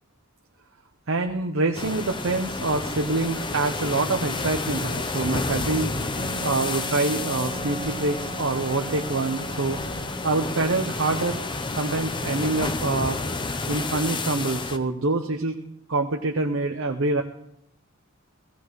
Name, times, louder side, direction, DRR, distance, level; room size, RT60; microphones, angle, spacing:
voice 1, 1.1-5.9 6.4-11.4 11.8-13.2 13.7-15.6 15.9-17.2, right 3 dB, 70° right, 3 dB, 0.8 m, -26 dB
sound 1, 1.7-14.8, left 3 dB, 25° left, 0.7 m, -30 dB
Wind instrument woodwind instrument, 6.2-10.8, right 3 dB, 45° right, 1.3 m, -38 dB
17.0 x 16.0 x 3.2 m, 0.77 s
head